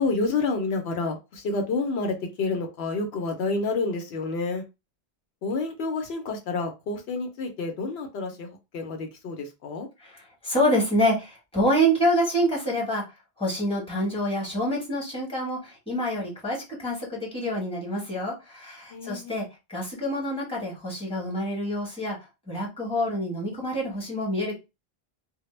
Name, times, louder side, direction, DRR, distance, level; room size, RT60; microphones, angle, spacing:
voice 1, 0.0-4.6 5.4-9.9 18.9-19.4, left 3 dB, 80° left, 4 dB, 0.8 m, -29 dB
voice 2, 10.0-13.0 13.4-19.4 19.7-22.2 22.5-24.5, equal, 5° left, -3 dB, 0.9 m, -27 dB
2.1 x 2.0 x 3.0 m, 0.25 s
omnidirectional pair, 1.1 m